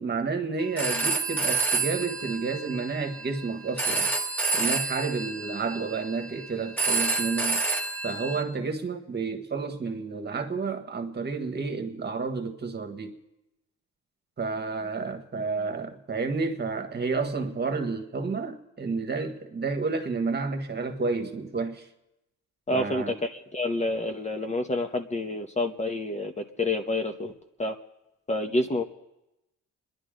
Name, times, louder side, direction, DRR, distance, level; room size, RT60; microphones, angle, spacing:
voice 1, 0.0-4.1 4.5-7.6 8.0-13.2 14.4-21.9 22.7-23.2, right 4 dB, 35° right, 1.6 m, -30 dB
Telephone, 0.6-8.4, right 3 dB, 5° left, 1.8 m, -29 dB
voice 2, 22.7-27.3 27.6-27.8 28.3-28.8, left 2 dB, 25° left, 1.0 m, -28 dB
28.5 x 11.0 x 3.8 m
cardioid pair, 90°, 30 cm